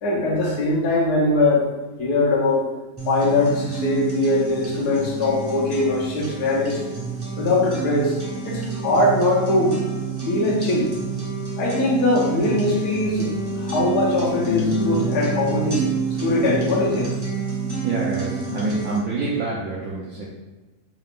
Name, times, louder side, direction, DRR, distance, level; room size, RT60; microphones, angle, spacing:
voice 1, 0.0-1.7 2.0-2.7 3.1-6.8 7.4-8.2 8.4-9.8 10.3-10.9 11.6-15.9 16.2-17.2, left 2 dB, 75° left, -3 dB, 1.4 m, -21 dB
sound 1, 3.0-19.0, right 4 dB, 20° right, 0.7 m, -28 dB
voice 2, 17.8-20.3, right 3 dB, 65° right, -5 dB, 1.0 m, -26 dB
4.7 x 2.4 x 3.5 m, 1.2 s
omnidirectional pair, 1.8 m